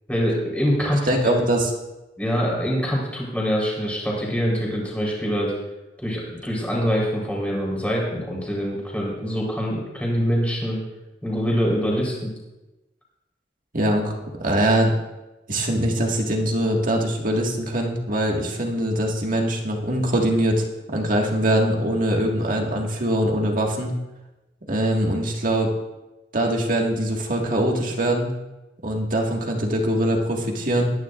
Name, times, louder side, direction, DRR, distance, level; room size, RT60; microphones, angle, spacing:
voice 1, 0.1-1.4 2.2-5.5 6.0-10.8 11.2-12.3, equal, 10° left, -3 dB, 4.1 m, -24 dB
voice 2, 1.1-1.7 13.7-14.1 14.4-14.9 15.5-20.6 20.9-23.9 24.7-25.7 26.3-28.3 28.8-30.9, right 1 dB, 50° right, 0 dB, 1.9 m, -22 dB
21.5 x 10.5 x 2.5 m, 1.0 s
head